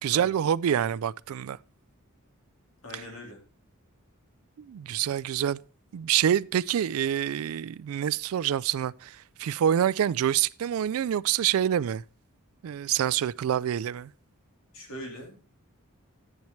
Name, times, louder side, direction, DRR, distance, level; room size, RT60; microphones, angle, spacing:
voice 1, 0.0-1.6 4.6-5.6 5.9-12.0 12.6-14.1, right 10 dB, 75° right, 0.3 m, -26 dB
voice 2, 2.8-3.4 14.7-15.4, equal, 65° left, 3.2 m, -41 dB
10.5 x 9.2 x 3.1 m
head